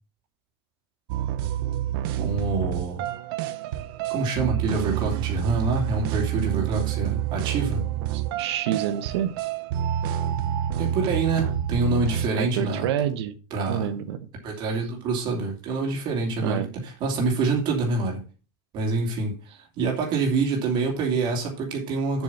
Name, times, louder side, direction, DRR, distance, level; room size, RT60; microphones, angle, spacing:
sound 1, 1.1-12.3, right 11 dB, 60° right, 0.8 m, -28 dB
voice 1, 2.1-3.1 4.1-7.9 10.8-12.9 13.5-13.9 14.4-18.2 18.7-19.4 19.8-22.2, right 3 dB, 35° right, 2.6 m, -26 dB
voice 2, 8.1-9.4 12.4-13.4 13.7-14.2 16.4-16.7, right 10 dB, 85° right, 1.0 m, -27 dB
7.4 x 6.1 x 5.6 m
supercardioid pair, 170°, 13 cm